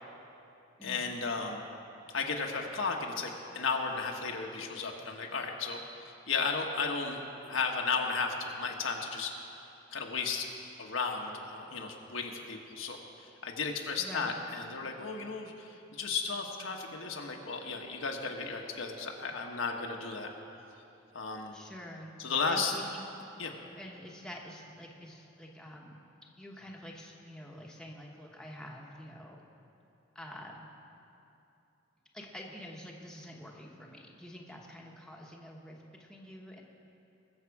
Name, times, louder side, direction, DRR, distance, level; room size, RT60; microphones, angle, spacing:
voice 1, 0.8-1.6 2.1-7.2 7.5-9.3 9.9-10.5 10.8-20.3 21.1-21.6 22.2-22.7 23.4-23.5, left 4 dB, 80° left, 1 dB, 1.3 m, -34 dB
voice 2, 14.0-14.4 21.5-22.1 22.5-23.1 23.8-26.0 26.4-29.4 30.1-30.7 32.1-36.6, equal, 5° left, -1 dB, 1.1 m, -47 dB
21.0 x 7.4 x 4.8 m, 2.8 s
head